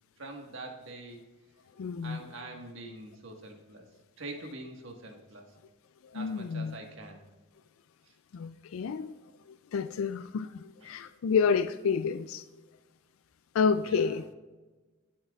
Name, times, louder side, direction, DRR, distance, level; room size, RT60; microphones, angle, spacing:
voice 1, 0.2-1.2 2.0-3.8 4.2-5.5 6.1-7.2 10.8-11.0 13.8-14.2, right 2 dB, 70° right, 1.5 m, -44 dB
voice 2, 1.8-2.2 6.0-6.7 8.3-9.1 9.5-12.5 13.5-14.3, left 6 dB, 85° left, 0.4 m, -29 dB
15.5 x 7.5 x 2.4 m
head